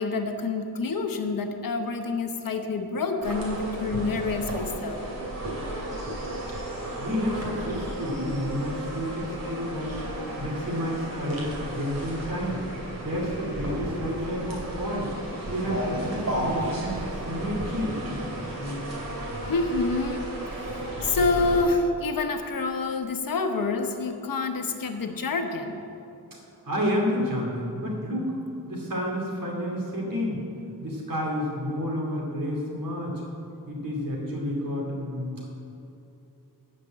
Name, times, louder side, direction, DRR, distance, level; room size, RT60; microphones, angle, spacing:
voice 1, 0.0-5.1 19.4-20.3 20.5-25.8, left 3 dB, 65° left, 6 dB, 1.0 m, -27 dB
sound 1, 3.2-21.6, right 1 dB, 45° right, 2.7 m, -33 dB
voice 2, 7.0-10.0 10.4-12.6 13.0-15.1 15.5-18.0 26.6-28.3 28.7-30.4 30.8-33.2 33.7-35.4, equal, 60° right, -2 dB, 2.6 m, -30 dB
13.5 x 5.3 x 8.6 m, 2.8 s
wide cardioid pair, 160°, 37 cm